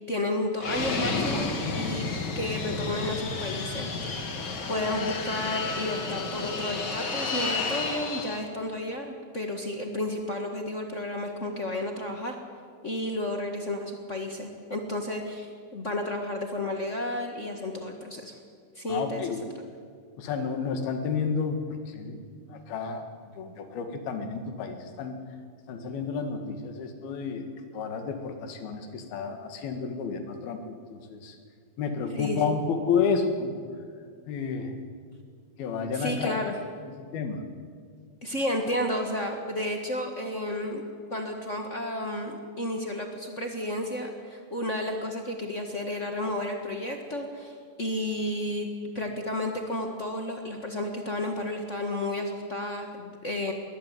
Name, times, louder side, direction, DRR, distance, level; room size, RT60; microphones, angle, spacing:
voice 1, 0.1-2.1 2.3-4.1 4.7-12.3 12.8-18.3 18.7-19.2 32.1-32.5 35.9-36.5 38.2-40.8 41.1-48.7 48.9-53.5, left 1 dB, 60° left, 3 dB, 0.7 m, -32 dB
Fixed-wing aircraft airplane, 0.6-8.4, left 4 dB, 40° left, 2.3 m, -31 dB
voice 2, 18.9-19.5 20.2-21.6 21.9-23.1 23.4-25.2 25.7-27.5 27.7-31.4 31.8-33.6 34.3-34.8 35.6-36.4 36.8-37.4, left 5 dB, 75° left, 6 dB, 3.8 m, -31 dB
21.0 x 20.0 x 9.4 m, 2.1 s
omnidirectional pair, 4.4 m